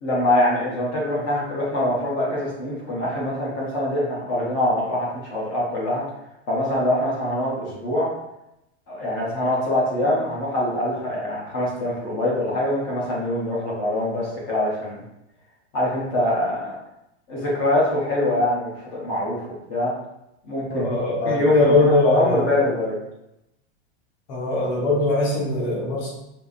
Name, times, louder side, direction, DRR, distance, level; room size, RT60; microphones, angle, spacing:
voice 1, 0.0-6.1 6.5-8.1 8.9-15.0 15.7-16.8 17.3-19.9 20.4-20.9 21.2-23.0, left 1 dB, 20° left, -5 dB, 0.4 m, -24 dB
voice 2, 20.7-22.6 24.3-26.1, left 2 dB, 40° left, -5 dB, 1.2 m, -21 dB
5.0 x 2.4 x 2.4 m, 0.86 s
supercardioid pair, 170°, 35 cm